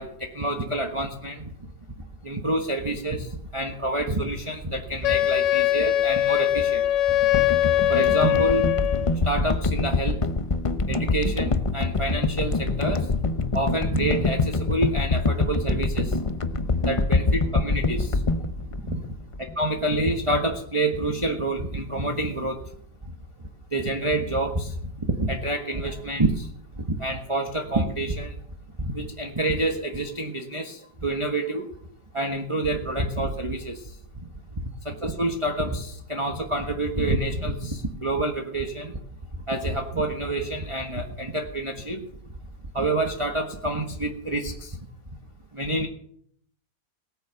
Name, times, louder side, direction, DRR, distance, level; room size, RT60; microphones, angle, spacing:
voice 1, 0.0-1.4 2.2-7.2 7.9-8.7 9.2-10.2 10.9-13.1 13.5-16.2 16.8-18.2 18.9-19.0 19.6-22.6 23.7-26.5 26.8-28.3 28.8-31.7 32.1-33.8 34.8-39.0 39.5-42.1 42.7-44.8 45.5-45.9, right 2 dB, 20° right, 2 dB, 1.3 m, -27 dB
Wind instrument woodwind instrument, 5.0-9.2, left 13 dB, 80° left, 1.5 m, -22 dB
sound 1, 7.3-19.7 20.0-20.1, left 3 dB, 60° left, 0.3 m, -25 dB
18.5 x 9.9 x 6.9 m, 0.65 s
omnidirectional pair, 1.9 m